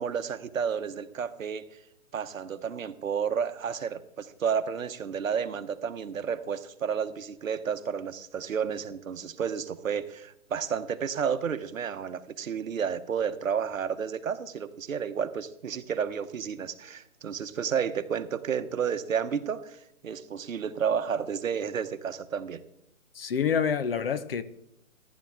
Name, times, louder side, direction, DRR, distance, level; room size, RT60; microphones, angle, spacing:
voice 1, 0.0-1.6 2.1-22.6, right 7 dB, 70° right, 1.1 m, -31 dB
voice 2, 23.1-24.4, left 7 dB, 45° left, 0.7 m, -27 dB
14.5 x 10.5 x 3.6 m
hypercardioid pair, 150°, 42 cm